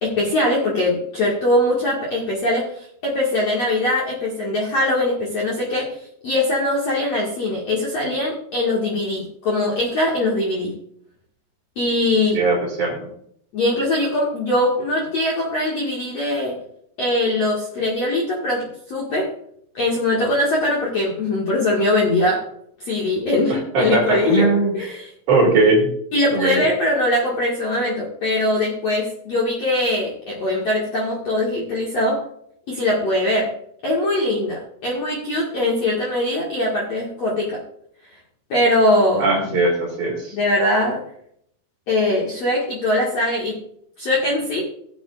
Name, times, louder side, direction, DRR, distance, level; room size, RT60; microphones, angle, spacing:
voice 1, 0.0-2.7 3.0-5.9 6.2-10.7 11.8-12.4 13.5-16.6 17.0-19.3 19.7-22.4 22.8-24.5 24.7-25.1 26.1-32.2 32.7-33.5 33.8-37.6 38.5-39.6 40.3-41.0 41.9-43.6 44.0-44.6, left 1 dB, 50° left, -5 dB, 2.2 m, -21 dB
voice 2, 12.3-13.1 23.5-24.7 25.3-25.9 26.3-26.6 39.2-40.3, right 3 dB, 50° right, -2 dB, 3.2 m, -19 dB
17.5 x 7.9 x 2.5 m, 0.69 s
omnidirectional pair, 5.1 m